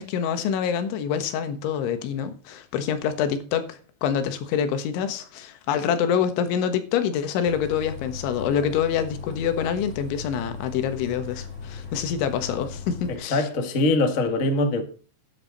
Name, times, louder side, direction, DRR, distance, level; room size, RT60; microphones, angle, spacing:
voice 1, 0.0-13.5, left 8 dB, 90° left, 3.7 m, -26 dB
Bus, 7.4-13.2, left 5 dB, 40° left, 1.0 m, -38 dB
voice 2, 13.1-14.8, left 2 dB, 60° left, 0.8 m, -23 dB
11.0 x 10.5 x 4.0 m
omnidirectional pair, 5.2 m